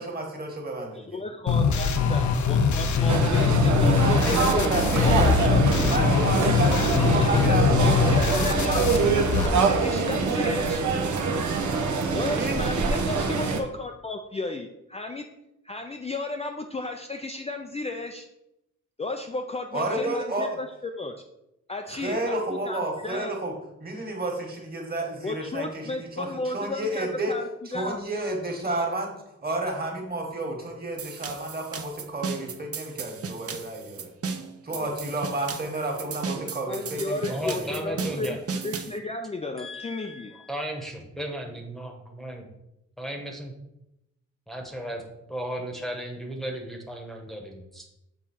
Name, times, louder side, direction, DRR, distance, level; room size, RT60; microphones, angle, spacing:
voice 1, 0.0-1.2 4.2-5.5 5.9-6.8 7.1-8.0 8.3-8.8 12.2-12.6 19.7-20.6 22.0-23.5 23.8-26.3 26.5-27.3 27.7-29.1 29.4-34.1 34.6-38.2, right 1 dB, 30° right, 1 dB, 1.8 m, -31 dB
voice 2, 0.9-5.9 6.7-10.8 12.1-15.3 15.6-18.3 19.0-21.1 21.7-23.3 25.2-28.0 34.7-34.9 36.2-36.4 36.7-38.4 38.6-40.3, left 2 dB, 20° left, 4 dB, 0.4 m, -34 dB
sound 1, 1.5-9.5, left 5 dB, 80° left, 0.7 m, -22 dB
sound 2, 3.1-13.6, right 4 dB, 80° right, 1.0 m, -25 dB
sound 3, 31.0-39.0, right 5 dB, 55° right, 0.7 m, -35 dB
voice 3, 37.3-38.4 39.6-42.4 43.0-43.5 44.5-47.9, equal, ahead, 0 dB, 1.1 m, -35 dB
7.1 x 3.7 x 5.7 m, 0.87 s
wide cardioid pair, 125°, 29 cm